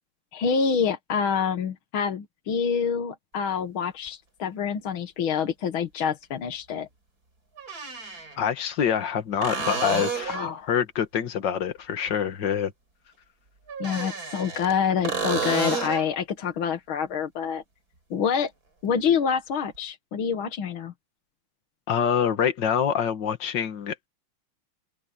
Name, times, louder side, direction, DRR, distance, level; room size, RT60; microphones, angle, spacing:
voice 1, 0.3-6.9 10.3-10.7 13.8-17.6 18.1-18.5 18.8-20.9, left 7 dB, 75° left, 2.3 m, -27 dB
sound 1, 4.1-4.2 6.2-6.3 7.6-8.4 9.4-10.5 13.7-14.7 15.0-16.1 19.7-19.8, right 4 dB, 45° right, 5.2 m, -30 dB
voice 2, 8.4-10.4 10.7-12.7 21.9-24.0, left 8 dB, 60° left, 2.2 m, -25 dB
open air
omnidirectional pair, 2.3 m